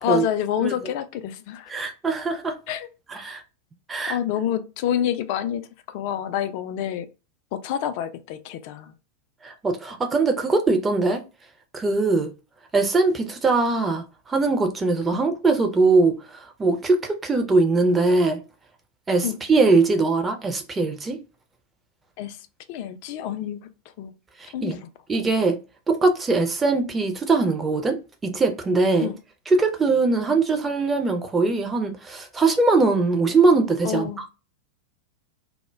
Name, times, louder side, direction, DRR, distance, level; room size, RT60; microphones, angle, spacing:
voice 1, 0.0-1.7 2.7-2.9 4.1-5.7 5.9-7.1 7.5-8.9 15.1-15.2 19.2-19.4 22.2-22.4 22.7-23.6 24.0-24.1 24.5-24.8 29.0-29.2 33.8-34.2, left 10 dB, 45° left, 0.3 m, -27 dB
voice 2, 0.6-0.9 1.7-2.5 3.1-3.4 3.9-4.2 9.4-11.2 11.7-12.3 12.7-18.4 19.1-21.2 24.4-24.8 25.1-25.6 25.9-29.1 29.5-34.3, right 3 dB, 15° right, 0.5 m, -21 dB
2.1 x 2.1 x 3.2 m
figure-of-eight pair, 90°, 0 cm